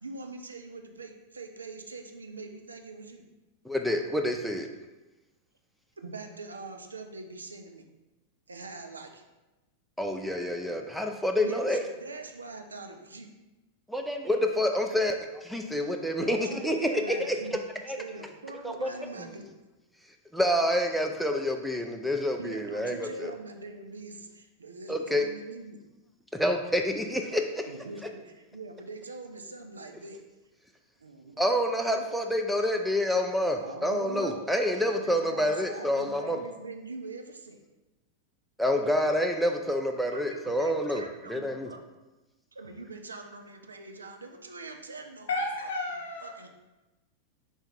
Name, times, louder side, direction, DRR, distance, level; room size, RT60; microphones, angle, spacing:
voice 1, 0.0-3.2 6.0-7.9 8.5-9.2 11.4-13.3 16.2-17.6 18.0-19.5 22.4-25.8 27.7-30.2 31.0-31.5 33.6-34.4 35.0-37.6 40.1-41.8 42.5-45.3 45.6-45.7 46.2-46.5, right 3 dB, 75° right, 5 dB, 0.4 m, -43 dB
voice 2, 3.7-4.7 10.0-11.8 13.9-17.6 17.9-18.0 18.6-18.9 20.3-23.3 24.9-25.3 26.3-27.7 31.4-36.4 38.6-41.0 41.3-41.7, equal, ahead, 3 dB, 0.4 m, -28 dB
voice 3, 45.3-46.3, left 2 dB, 65° left, 0 dB, 0.9 m, -32 dB
4.3 x 2.9 x 3.6 m, 1.1 s
figure-of-eight pair, 90°, 0 cm